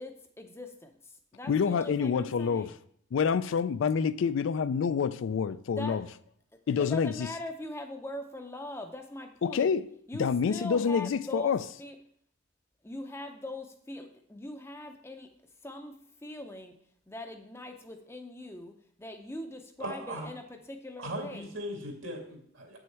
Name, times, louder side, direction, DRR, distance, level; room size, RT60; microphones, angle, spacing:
voice 1, 0.0-2.8 5.7-6.0 6.8-9.7 10.1-12.0 12.8-15.3 15.6-16.8 17.1-21.5, left 1 dB, 10° left, 0.5 m, -41 dB
voice 2, 1.5-2.7 3.1-6.0 6.7-7.1 9.4-9.8 10.2-11.6, left 6 dB, 70° left, 0.3 m, -27 dB
voice 3, 19.8-20.3 21.0-22.8, right 1 dB, 75° right, 2.2 m, -38 dB
7.9 x 6.3 x 4.5 m
head